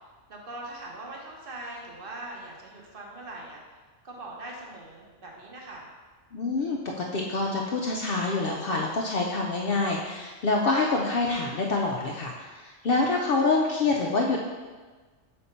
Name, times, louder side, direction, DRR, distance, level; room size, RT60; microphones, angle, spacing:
voice 1, 0.3-3.6 4.0-5.9, right 2 dB, 45° right, -2 dB, 1.1 m, -41 dB
voice 2, 6.3-14.4, left 3 dB, 60° left, -1 dB, 0.7 m, -26 dB
4.3 x 4.2 x 5.3 m, 1.4 s
omnidirectional pair, 1.3 m